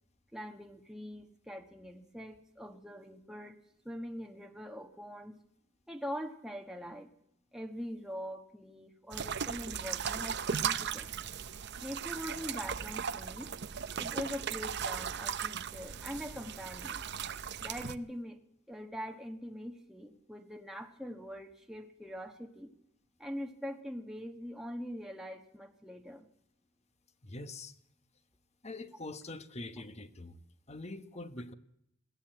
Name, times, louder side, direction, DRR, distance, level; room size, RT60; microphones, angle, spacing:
voice 1, 0.3-3.6 3.8-5.4 5.9-7.1 7.5-11.2 11.8-13.5 14.0-17.0 17.6-18.4 18.7-22.7 23.2-26.3, equal, 5° right, 2 dB, 1.2 m, -43 dB
sound 1, 9.1-18.0, right 7 dB, 55° right, 0.8 m, -37 dB
voice 2, 27.2-27.7 28.6-30.4 30.7-31.5, left 2 dB, 30° left, 11 dB, 1.2 m, -44 dB
21.0 x 16.0 x 9.0 m, 0.78 s
head